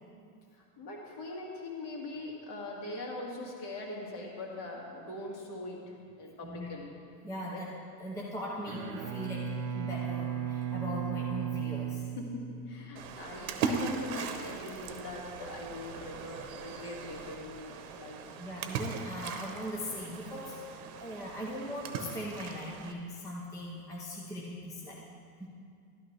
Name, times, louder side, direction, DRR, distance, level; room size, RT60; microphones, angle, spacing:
voice 1, 0.6-5.8 6.2-6.9 7.5-7.6 12.2-18.2, left 2 dB, 40° left, -1 dB, 2.2 m, -42 dB
voice 2, 7.2-7.7 8.0-12.0 18.4-25.0 25.4-25.5, equal, 5° left, -3 dB, 0.6 m, -40 dB
Bowed string instrument, 8.6-12.9, right 8 dB, 35° right, 0.7 m, -36 dB
Splash splatter, 13.0-22.9, right 5 dB, 60° right, 1.0 m, -39 dB
12.0 x 11.5 x 3.3 m, 2.3 s
supercardioid pair, 150°, 48 cm